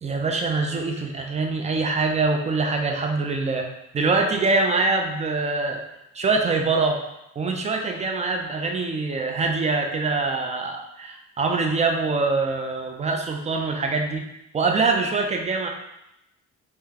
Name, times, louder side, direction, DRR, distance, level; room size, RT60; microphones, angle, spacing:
voice 1, 0.0-3.7 3.9-5.8 6.1-7.0 7.4-14.3 14.5-15.7, right 3 dB, 25° right, 3 dB, 0.4 m, -24 dB
3.6 x 2.1 x 2.8 m, 0.86 s
cardioid pair, 90°, 30 cm